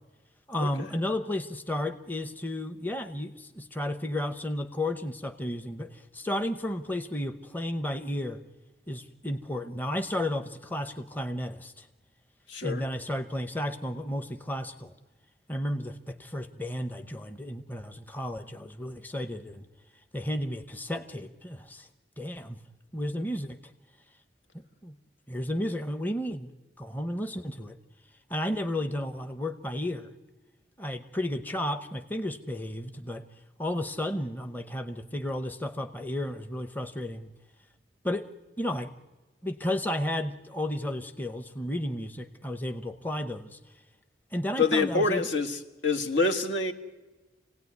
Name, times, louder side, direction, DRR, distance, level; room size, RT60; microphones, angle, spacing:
voice 1, 0.5-8.4 8.9-11.9 12.6-14.9 15.5-19.7 20.1-21.9 22.2-22.6 22.9-23.7 24.8-24.9 25.3-26.5 26.8-27.8 28.3-30.1 30.8-33.3 33.6-37.3 38.0-38.3 38.6-38.9 39.4-43.6 44.3-45.3, left 1 dB, 10° left, 8 dB, 0.7 m, -33 dB
voice 2, 12.5-12.8 44.6-45.6 45.8-46.7, left 3 dB, 75° left, 4 dB, 1.7 m, -26 dB
27.5 x 17.5 x 9.6 m, 1.2 s
head